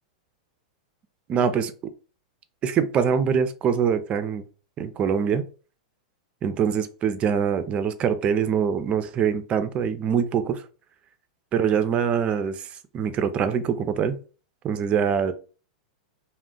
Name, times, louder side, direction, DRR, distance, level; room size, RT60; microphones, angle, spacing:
voice 1, 1.3-1.7 2.6-4.4 4.8-5.4 6.4-10.6 11.5-12.7 12.9-14.2 14.6-15.3, right 7 dB, 30° right, 0.4 m, -24 dB
2.4 x 2.1 x 3.7 m
hypercardioid pair, 110°, 4 cm